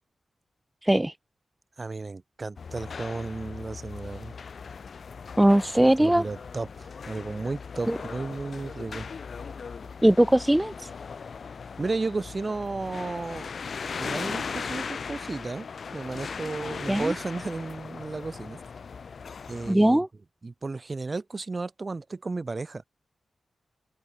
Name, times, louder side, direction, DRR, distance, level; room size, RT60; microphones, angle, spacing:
voice 1, 0.8-1.1 5.4-6.2 7.9-8.0 10.0-10.9 16.9-17.1 19.7-20.1, right 1 dB, 10° right, 0.3 m, -20 dB
voice 2, 1.8-4.3 5.7-9.1 11.8-13.5 14.0-15.7 15.9-18.6 19.5-20.0 20.4-22.8, right 3 dB, 40° right, 2.6 m, -33 dB
sound 1, 2.6-19.7, left 5 dB, 65° left, 0.7 m, -38 dB
open air
cardioid pair, 65°, 0 cm